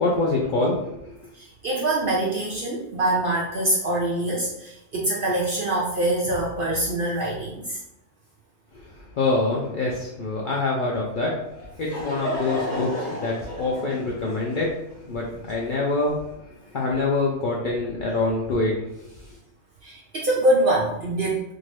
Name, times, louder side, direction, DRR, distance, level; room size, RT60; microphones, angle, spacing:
voice 1, 0.0-1.2 8.9-16.2 16.5-19.3, left 3 dB, 60° left, -4 dB, 0.5 m, -26 dB
voice 2, 1.3-7.8 19.8-21.5, right 1 dB, 60° right, -3 dB, 0.5 m, -24 dB
Laughter / Crowd, 11.5-16.1, equal, 15° left, 1.3 m, -33 dB
2.7 x 2.6 x 3.1 m, 0.83 s
omnidirectional pair, 1.3 m